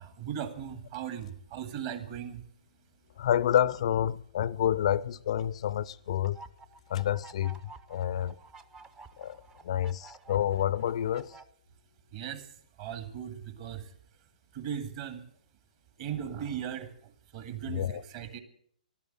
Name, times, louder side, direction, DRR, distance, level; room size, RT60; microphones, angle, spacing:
voice 1, 0.0-2.5 12.1-15.3 16.0-18.4, right 9 dB, 40° right, 2.1 m, -38 dB
voice 2, 3.2-6.4 6.9-8.4 9.2-11.4 17.7-18.0, left 10 dB, 50° left, 0.5 m, -29 dB
sound 1, 6.2-11.4, right 4 dB, 15° right, 0.7 m, -52 dB
13.0 x 12.0 x 7.6 m
figure-of-eight pair, 125°, 4 cm